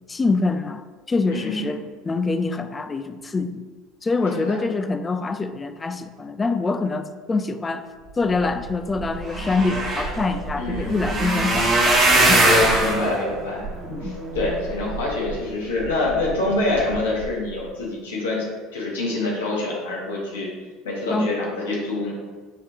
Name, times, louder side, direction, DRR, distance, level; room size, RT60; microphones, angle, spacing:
voice 1, 0.1-3.6 4.0-7.8 8.2-12.4 13.9-14.2 21.1-21.3, left 3 dB, 25° left, 10 dB, 0.3 m, -25 dB
voice 2, 1.3-1.7 4.2-4.6 10.6-10.9 12.6-13.7 14.0-18.4 18.7-20.5 20.8-22.1, left 2 dB, 90° left, -3 dB, 1.2 m, -26 dB
sound 1, 8.6-8.7 8.9-15.3 15.9-16.3 16.7-16.9 17.2-17.3, right 1 dB, 40° right, 1.3 m, -21 dB
5.8 x 3.0 x 2.9 m, 1.4 s
hypercardioid pair, 80°, 0 cm